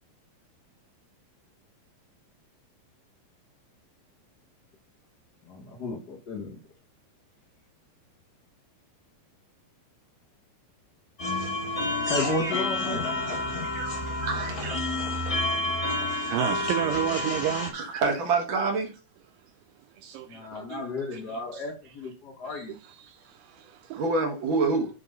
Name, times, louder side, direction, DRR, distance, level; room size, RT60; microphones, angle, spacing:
voice 1, 5.5-6.6 12.1-13.0 20.3-22.8, left 2 dB, 90° left, 0.8 m, -33 dB
sound 1, 11.2-17.7, left 2 dB, 15° left, 1.3 m, -29 dB
voice 2, 13.6-14.8 17.7-18.9 23.9-24.9, right 4 dB, 65° right, 1.2 m, -27 dB
voice 3, 16.1-17.7 20.0-20.8 21.1-21.2 21.5-21.6 22.5-22.7 23.0-24.0, right 13 dB, 85° right, 2.0 m, -32 dB
9.5 x 3.8 x 5.3 m
omnidirectional pair, 4.4 m